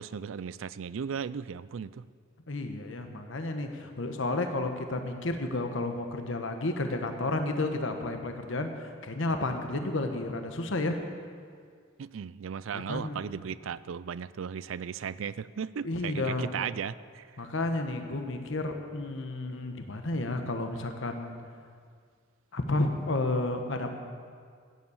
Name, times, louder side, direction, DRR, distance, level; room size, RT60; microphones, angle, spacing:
voice 1, 0.0-2.1 12.0-17.5, right 7 dB, 75° right, 18 dB, 0.4 m, -36 dB
voice 2, 2.5-10.9 12.7-13.2 15.8-16.6 17.4-21.3 22.5-23.9, left 2 dB, 70° left, 5 dB, 1.1 m, -31 dB
14.5 x 9.6 x 7.2 m, 2.1 s
head